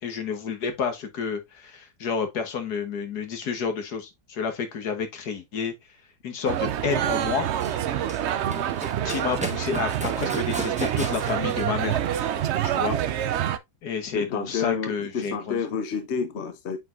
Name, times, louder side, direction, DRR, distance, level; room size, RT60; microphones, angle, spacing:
voice 1, 0.0-5.7 6.2-7.5 9.1-12.0 12.6-13.0 13.8-15.6, left 6 dB, 70° left, 1.8 m, -30 dB
sound 1, 6.5-13.6, right 11 dB, 70° right, 0.6 m, -27 dB
Run, 7.0-13.0, right 1 dB, 5° right, 1.0 m, -37 dB
voice 2, 14.1-16.8, left 6 dB, 50° left, 1.2 m, -30 dB
8.1 x 4.6 x 2.5 m
omnidirectional pair, 1.7 m